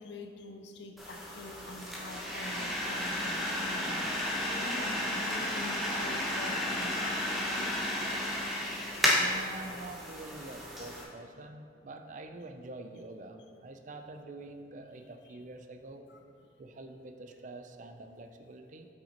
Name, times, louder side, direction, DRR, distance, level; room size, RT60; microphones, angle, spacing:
voice 1, 0.0-4.1 4.5-9.1 15.2-15.4 16.1-16.2, left 2 dB, 65° left, 5 dB, 0.5 m, -46 dB
sound 1, 1.0-11.0, left 1 dB, ahead, 0.8 m, -33 dB
voice 2, 9.2-16.1 16.6-18.9, right 2 dB, 40° right, 6 dB, 0.4 m, -46 dB
5.8 x 5.4 x 4.3 m, 2.4 s
head